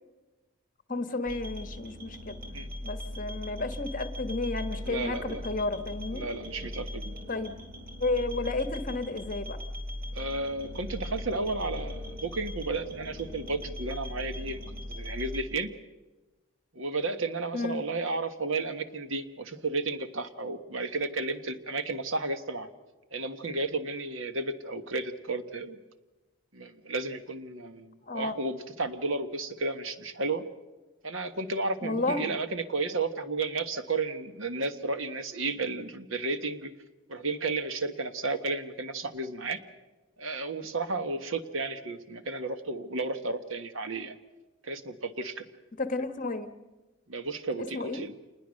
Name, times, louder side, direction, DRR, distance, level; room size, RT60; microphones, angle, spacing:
voice 1, 0.9-2.4 2.8-6.2 7.3-7.5 8.0-9.6 17.5-17.8 28.1-28.3 31.8-32.3 45.8-46.5 47.7-48.0, left 2 dB, 40° left, 10 dB, 1.4 m, -32 dB
sound 1, 1.2-15.4, left 1 dB, 45° right, 4.2 m, -39 dB
voice 2, 4.8-5.4 6.1-7.2 10.1-14.6 14.9-15.7 16.7-22.7 23.1-25.8 26.5-30.4 31.0-36.7 37.1-39.6 40.2-44.2 44.6-45.4 47.1-48.1, right 3 dB, 75° right, 9 dB, 1.5 m, -33 dB
27.5 x 20.5 x 6.5 m, 1.2 s
head